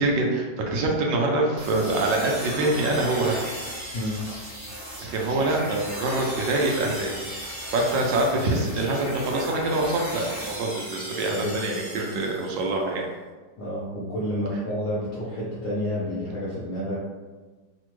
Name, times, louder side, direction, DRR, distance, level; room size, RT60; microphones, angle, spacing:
voice 1, 0.0-3.4 5.0-7.1 7.4-13.1, right 2 dB, 80° right, 0 dB, 1.3 m, -25 dB
sound 1, 1.6-12.7, equal, 25° right, 0.5 m, -36 dB
voice 2, 11.3-12.1 13.6-17.1, equal, 70° left, -7 dB, 0.7 m, -30 dB
3.4 x 2.1 x 3.0 m, 1.3 s
omnidirectional pair, 2.0 m